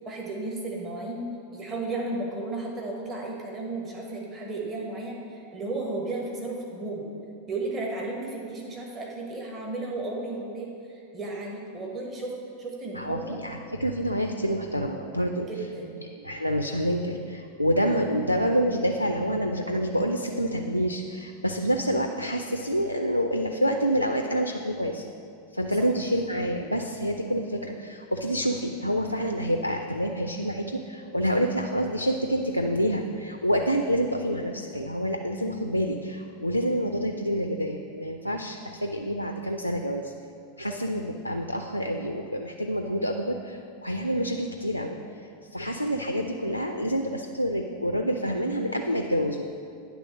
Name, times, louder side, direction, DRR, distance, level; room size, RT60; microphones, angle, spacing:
voice 1, 0.0-1.2 1.5-7.1 7.5-13.4 15.5-16.0 25.8-25.9 40.7-40.8, right 2 dB, 25° right, -2 dB, 1.2 m, -34 dB
voice 2, 13.0-15.5 16.2-25.0 25.5-40.1 40.6-45.0 45.5-49.4, equal, 90° left, 5 dB, 0.3 m, -27 dB
9.6 x 3.4 x 6.2 m, 2.4 s
figure-of-eight pair, 90°, 0 cm